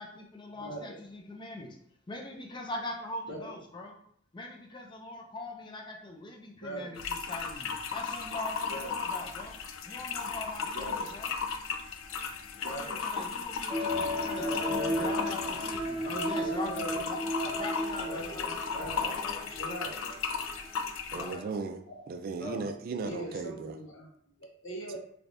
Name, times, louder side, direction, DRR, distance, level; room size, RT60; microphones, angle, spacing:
voice 1, 0.0-1.8 2.1-4.0 4.3-9.6 9.9-11.3 12.5-19.5 21.1-21.4 22.4-22.7, left 2 dB, 25° left, 0.5 m, -42 dB
voice 2, 0.6-1.1 3.2-3.6 6.6-6.9 8.6-8.9 10.7-11.1 12.6-13.1 13.7-13.8 14.2-15.3 16.3-17.0 18.0-19.2 19.5-20.1 20.5-20.7 21.4-21.5 21.9-22.1 23.0-24.1 24.4-25.0, right 1 dB, 70° left, 0.9 m, -41 dB
sound 1, 7.0-21.4, left 5 dB, 85° left, 0.4 m, -36 dB
sound 2, 13.7-19.9 20.3-20.4, equal, 20° right, 1.1 m, -34 dB
voice 3, 21.1-23.8, right 4 dB, 50° right, 0.3 m, -36 dB
3.3 x 3.2 x 2.6 m
head